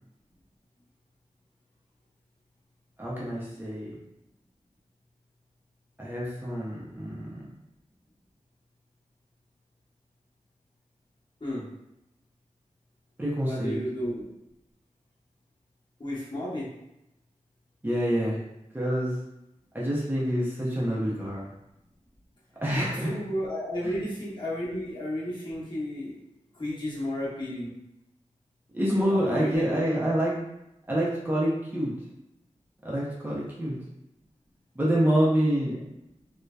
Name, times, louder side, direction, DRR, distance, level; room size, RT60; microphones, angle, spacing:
voice 1, 3.0-4.0 6.0-7.4 13.2-13.8 17.8-18.4 18.7-19.2 19.7-21.5 22.6-23.1 23.8-24.0 28.7-30.4 30.9-31.9 32.8-33.8 34.7-35.8, equal, 15° right, -7 dB, 0.5 m, -27 dB
voice 2, 13.4-14.2 16.0-16.7 22.7-26.2 26.5-27.7 29.1-30.1, equal, 35° left, -9 dB, 1.0 m, -33 dB
2.6 x 2.1 x 2.2 m, 0.86 s
wide cardioid pair, 75°, 13 cm